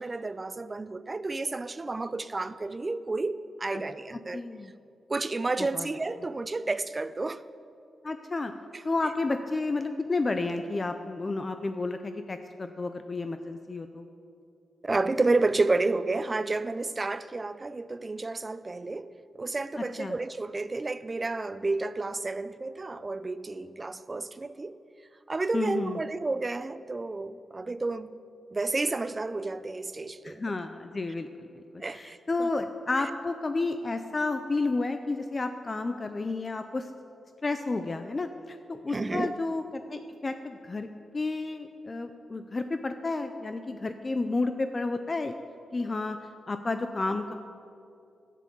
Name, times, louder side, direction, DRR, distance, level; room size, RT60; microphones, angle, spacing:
voice 1, 0.0-4.4 5.1-7.4 8.7-8.8 14.8-19.1 19.4-24.8 25.3-28.1 28.5-30.4 31.8-32.5 38.9-39.4, right 3 dB, 25° right, 0.4 m, -31 dB
voice 2, 4.3-4.7 5.6-5.9 8.0-8.5 8.8-14.1 20.0-20.2 25.5-26.0 30.2-36.9 37.4-40.9 41.1-45.3 45.7-46.2 46.5-47.3, left 3 dB, 30° left, 0.5 m, -31 dB
11.5 x 7.5 x 7.0 m
cardioid pair, 105°, 0 cm